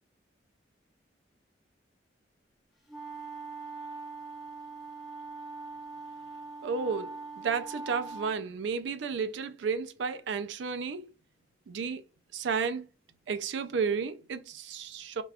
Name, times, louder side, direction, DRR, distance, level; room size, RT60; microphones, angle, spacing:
sound 1, 2.9-8.4, right 3 dB, ahead, 0.7 m, -42 dB
voice 1, 6.6-11.0 11.7-12.0 12.3-12.9 13.3-15.2, right 5 dB, 75° right, 0.4 m, -32 dB
4.7 x 2.2 x 2.3 m
head